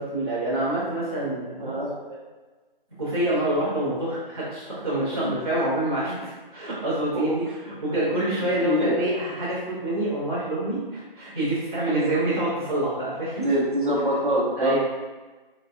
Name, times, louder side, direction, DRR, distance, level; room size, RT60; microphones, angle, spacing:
voice 1, 0.0-1.8 3.0-13.5 14.6-14.8, right 1 dB, 25° right, -14 dB, 0.7 m, -27 dB
voice 2, 1.6-1.9 5.1-5.3 7.1-7.3 8.6-9.0 11.9-12.1 13.4-14.8, equal, 60° right, -4 dB, 0.8 m, -24 dB
4.0 x 2.2 x 2.4 m, 1.3 s
figure-of-eight pair, 170°, 29 cm